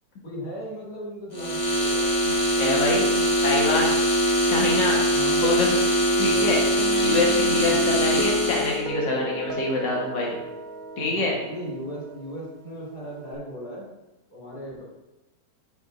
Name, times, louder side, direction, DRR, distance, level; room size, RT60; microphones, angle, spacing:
voice 1, 0.2-2.1 5.1-5.5 6.2-6.6 7.7-8.1 11.1-13.9 14.3-14.8, equal, 65° left, -7 dB, 2.9 m, -37 dB
sound 1, 1.3-8.8, equal, 30° left, 1.0 m, -22 dB
voice 2, 2.2-4.0 4.5-5.0 5.4-5.8 6.2-6.6 7.0-10.3 11.0-11.3, left 2 dB, 85° left, -3 dB, 2.0 m, -26 dB
Guitar, 6.8-13.3, equal, 85° right, 0.4 m, -35 dB
7.6 x 6.1 x 2.6 m, 0.99 s
omnidirectional pair, 1.9 m